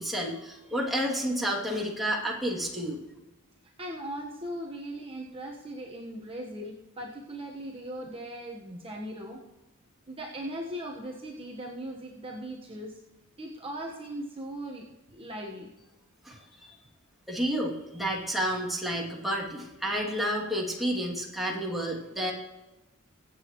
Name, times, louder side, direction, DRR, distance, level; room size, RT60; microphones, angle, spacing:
voice 1, 0.0-3.0 16.2-16.7 17.3-22.3, equal, ahead, -4 dB, 2.6 m, -30 dB
voice 2, 3.8-9.4 10.1-13.0 13.4-15.7, right 1 dB, 25° right, -1 dB, 1.2 m, -39 dB
24.0 x 8.2 x 3.1 m, 1.1 s
head